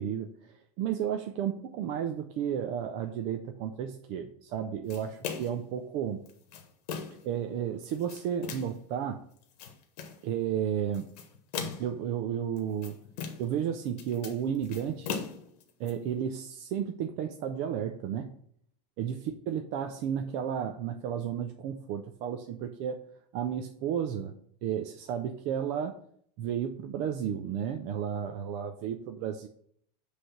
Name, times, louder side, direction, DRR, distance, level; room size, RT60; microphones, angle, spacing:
voice 1, 0.0-6.2 7.2-9.2 10.2-11.1 11.8-13.0 13.4-15.1 15.8-18.3 19.0-23.0 23.3-24.3 24.6-26.0 26.4-29.5, right 9 dB, 30° right, 6 dB, 0.4 m, -33 dB
sound 1, 4.9-5.7 6.3-7.3 7.8-8.8 9.4-10.2 10.9-12.0 12.6-13.6 13.9-15.9, left 6 dB, 70° left, 1.3 m, -39 dB
7.8 x 3.3 x 5.8 m, 0.64 s
supercardioid pair, 170°, 20 cm